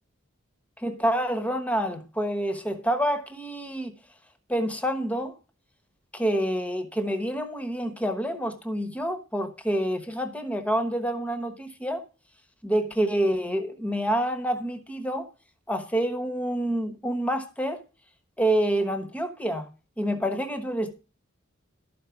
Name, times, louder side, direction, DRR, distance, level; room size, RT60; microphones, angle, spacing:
voice 1, 0.8-3.9 4.5-5.3 6.1-12.0 12.6-15.3 15.7-17.8 18.4-19.7 20.0-21.0, right 1 dB, 5° left, 1.1 m, -27 dB
12.5 x 5.2 x 5.9 m
head